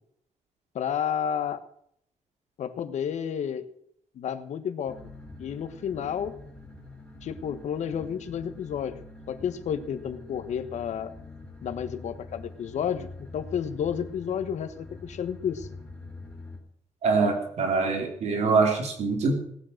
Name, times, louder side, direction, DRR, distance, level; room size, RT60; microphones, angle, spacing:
voice 1, 0.7-1.6 2.6-3.7 4.1-5.0 5.4-6.3 7.2-11.1 11.6-15.7, left 8 dB, 75° left, 11 dB, 1.2 m, -31 dB
sound 1, 4.9-16.6, left 2 dB, 10° left, 3.6 m, -45 dB
voice 2, 17.0-19.4, right 4 dB, 65° right, 3 dB, 3.4 m, -24 dB
18.0 x 8.9 x 6.5 m, 0.69 s
wide cardioid pair, 180°, 12 cm